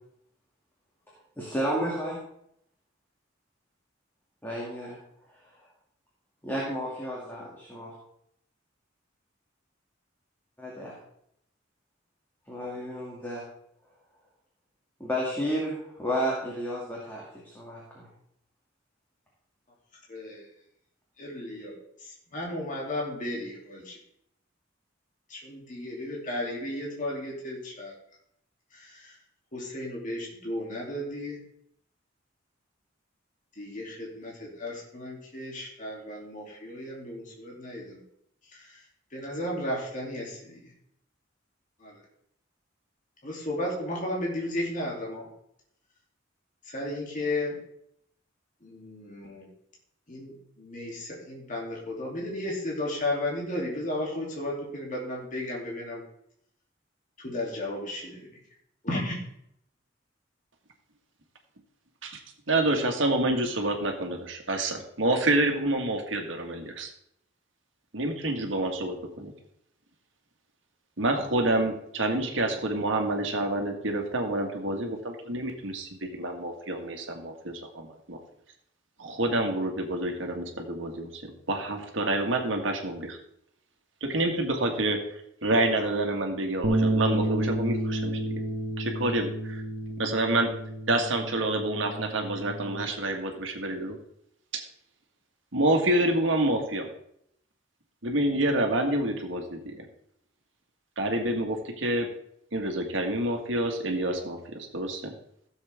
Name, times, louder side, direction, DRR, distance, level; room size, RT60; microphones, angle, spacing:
voice 1, 1.4-2.2 4.4-5.0 6.4-7.9 10.6-10.9 12.5-13.4 15.0-18.1, equal, 10° left, -5 dB, 2.3 m, -32 dB
voice 2, 20.1-20.5 21.2-21.7 22.0-24.0 25.3-27.9 28.7-29.2 29.5-31.4 33.6-38.0 38.5-38.8 39.1-40.7 41.8-42.0 43.2-45.3 46.6-47.6 48.6-49.5 50.1-56.0 57.2-58.3 58.8-59.2, left 1 dB, 45° left, -3 dB, 2.8 m, -34 dB
voice 3, 62.5-66.9 67.9-69.3 71.0-78.2 79.0-83.2 84.0-88.2 88.8-89.6 90.0-90.5 90.9-94.0 94.5-94.6 95.5-96.9 98.0-99.8 101.0-102.1 102.5-105.1, right 1 dB, 75° right, 3 dB, 1.7 m, -28 dB
sound 1, 86.6-92.9, right 1 dB, 55° right, 1.2 m, -30 dB
15.5 x 7.2 x 3.5 m, 0.74 s
head